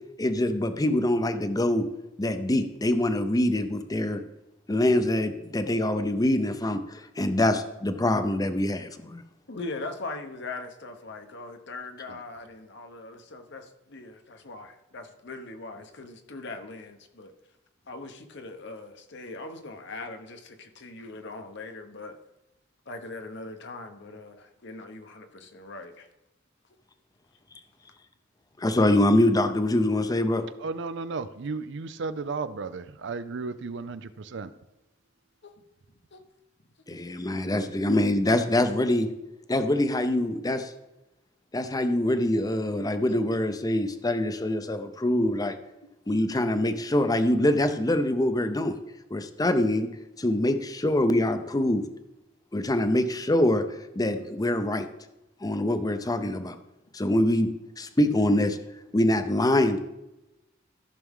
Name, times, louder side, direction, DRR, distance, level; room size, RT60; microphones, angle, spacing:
voice 1, 0.2-1.9 2.2-4.2 4.7-9.2 28.6-30.4 36.9-39.1 39.5-40.7 41.5-45.6 46.1-48.8 49.1-49.9 50.2-51.9 52.5-53.6 53.9-54.9 55.4-56.6 56.9-58.6 58.9-59.8, left 1 dB, 20° left, 9 dB, 0.6 m, -24 dB
voice 2, 9.5-17.3 17.9-22.2 22.9-26.1 35.4-35.6 36.1-36.2 55.5-55.6, left 3 dB, 65° left, 6 dB, 1.0 m, -40 dB
voice 3, 30.6-34.5, right 4 dB, 65° right, 13 dB, 0.5 m, -34 dB
14.5 x 6.0 x 3.7 m, 0.97 s
head